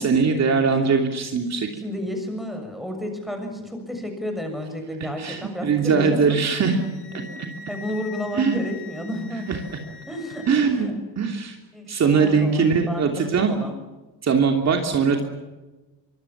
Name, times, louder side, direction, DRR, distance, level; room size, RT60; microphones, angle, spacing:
voice 1, 0.0-1.8 5.2-6.7 8.4-8.6 9.5-9.6 10.5-10.9 11.2-11.6 11.9-13.5 14.2-15.2, right 5 dB, 40° right, 3 dB, 3.0 m, -21 dB
voice 2, 1.7-6.7 7.1-7.4 7.7-9.5 10.1-11.0 11.7-13.7 14.7-14.9, left 1 dB, ahead, 4 dB, 6.9 m, -32 dB
Wind instrument woodwind instrument, 6.6-10.5, left 5 dB, 65° left, 5.7 m, -42 dB
25.0 x 24.5 x 7.4 m, 1.1 s
cardioid pair, 140°, 40 cm